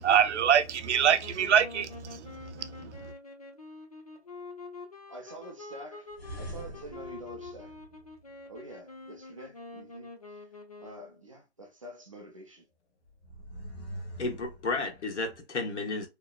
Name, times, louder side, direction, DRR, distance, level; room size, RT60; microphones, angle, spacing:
voice 1, 0.0-2.9, right 8 dB, 85° right, 0.5 m, -25 dB
sound 1, 0.9-11.2, left 3 dB, 35° left, 0.4 m, -46 dB
voice 2, 5.1-6.1 6.4-7.7 8.5-10.4 10.8-12.7, right 1 dB, 30° right, 0.5 m, -47 dB
sound 2, 6.1-8.6 13.1-15.4, right 1 dB, 65° left, 1.1 m, -44 dB
voice 3, 14.2-16.1, left 3 dB, 85° left, 1.1 m, -32 dB
2.9 x 2.1 x 2.3 m
hypercardioid pair, 165°, 34 cm